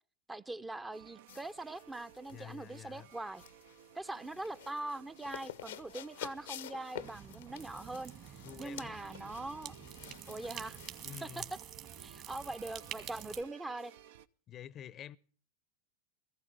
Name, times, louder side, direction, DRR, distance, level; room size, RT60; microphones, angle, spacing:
voice 1, 0.3-3.4 3.9-8.1 8.6-9.8 10.3-10.8 11.2-11.4 12.0-13.9, right 2 dB, 10° right, 0.6 m, -42 dB
sound 1, 0.9-14.3, right 10 dB, 65° right, 0.6 m, -58 dB
sound 2, 1.3-11.6, left 12 dB, 70° left, 0.7 m, -50 dB
voice 2, 2.3-3.1 8.4-9.0 11.0-11.5 14.5-15.2, left 10 dB, 35° left, 0.6 m, -48 dB
sound 3, 7.0-13.4, right 9 dB, 40° right, 1.9 m, -48 dB
18.5 x 15.0 x 3.4 m
hypercardioid pair, 95°, 0 cm